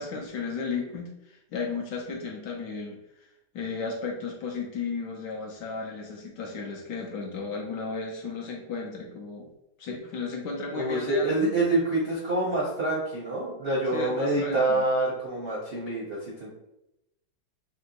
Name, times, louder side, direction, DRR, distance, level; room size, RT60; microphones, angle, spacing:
voice 1, 0.0-3.3 3.5-9.5 9.8-11.5 13.9-14.8, left 4 dB, 70° left, 0 dB, 1.2 m, -34 dB
voice 2, 10.7-16.5, right 2 dB, 55° right, -5 dB, 0.6 m, -26 dB
4.3 x 2.8 x 2.8 m, 0.88 s
omnidirectional pair, 2.2 m